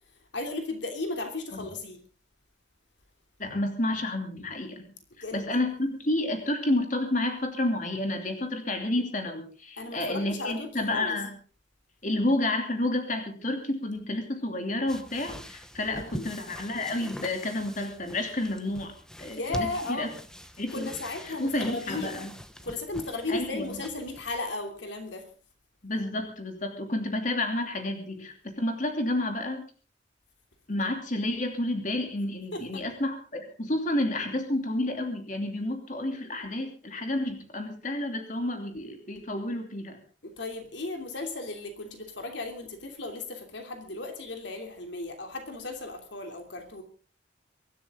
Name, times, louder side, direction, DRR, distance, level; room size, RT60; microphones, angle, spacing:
voice 1, 0.3-2.0 5.2-5.6 9.8-11.2 15.8-16.2 19.3-20.1 20.7-22.3 22.6-25.3 32.5-32.8 40.2-46.8, left 2 dB, 70° left, 5 dB, 3.0 m, -35 dB
voice 2, 3.4-4.8 5.3-11.3 12.0-18.9 19.2-20.1 20.6-20.9 21.3-22.3 23.3-23.8 25.8-29.6 30.7-40.0, left 1 dB, 40° left, 4 dB, 2.9 m, -30 dB
sound 1, 14.9-24.4, equal, 5° left, 1.1 m, -44 dB
24.0 x 12.5 x 3.7 m, 0.38 s
head